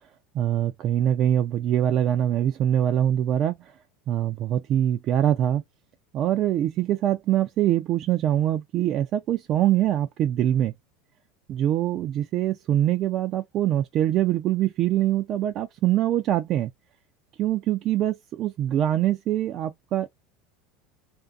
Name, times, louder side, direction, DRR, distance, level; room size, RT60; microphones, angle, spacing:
voice 1, 0.3-3.7 4.1-5.6 6.1-10.7 11.5-16.7 17.4-20.1, right 11 dB, 50° right, 0.4 m, -24 dB
2.5 x 2.5 x 2.3 m
hypercardioid pair, 95°, 0 cm